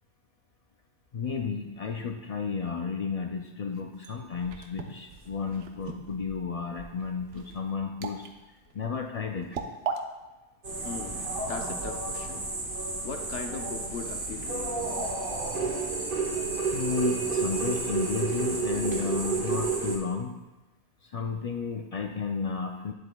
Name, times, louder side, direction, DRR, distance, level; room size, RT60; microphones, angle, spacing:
voice 1, 1.1-8.3 8.7-9.6 16.7-20.4 21.0-22.9, left 5 dB, 65° left, 3 dB, 0.3 m, -32 dB
sound 1, 3.7-10.0, right 6 dB, 65° right, 0.9 m, -39 dB
sound 2, 10.6-20.0, right 4 dB, 50° right, 1.3 m, -30 dB
voice 2, 10.8-12.5 13.0-14.8, left 5 dB, 80° left, 5 dB, 1.0 m, -39 dB
9.9 x 7.6 x 2.2 m, 1.1 s
omnidirectional pair, 1.2 m